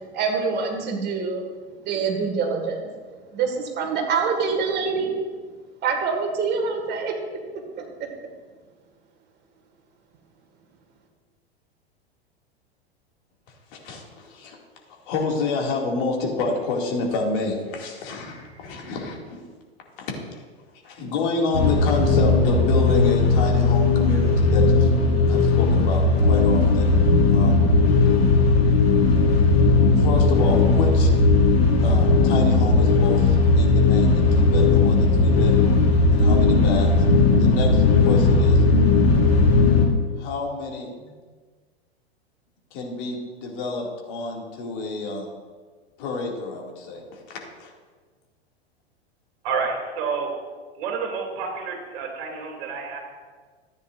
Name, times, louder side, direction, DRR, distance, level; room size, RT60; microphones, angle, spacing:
voice 1, 0.1-1.4 1.9-2.9 3.3-5.3 5.8-7.1 7.8-7.9, right 5 dB, 30° right, 2 dB, 1.8 m, -25 dB
voice 2, 13.8-14.6 14.9-19.4 20.0-20.4 20.8-24.9 25.3-26.9 27.3-27.6 29.7-31.1 31.8-35.8 36.1-36.9 37.4-38.6 40.2-41.1 42.7-45.3 46.0-47.7, left 3 dB, 50° left, 0 dB, 2.3 m, -29 dB
sound 1, 21.5-39.9, left 3 dB, 70° left, 1.6 m, -17 dB
voice 3, 49.4-50.3 50.8-53.0, right 5 dB, 50° right, 1 dB, 2.7 m, -29 dB
14.0 x 9.3 x 2.5 m, 1.5 s
figure-of-eight pair, 95°, 32 cm